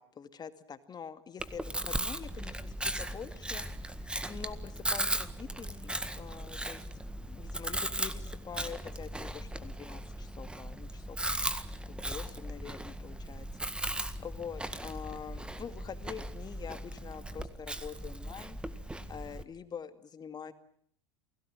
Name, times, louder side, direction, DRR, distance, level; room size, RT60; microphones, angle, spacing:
voice 1, 0.0-6.8 7.3-11.2 11.8-13.5 13.8-18.6 19.1-20.5, left 7 dB, 30° left, 10 dB, 2.3 m, -45 dB
Chewing mastication, 1.4-19.4, right 1 dB, 5° right, 1.8 m, -37 dB
29.0 x 18.0 x 9.1 m, 0.64 s
hypercardioid pair, 85°, 14 cm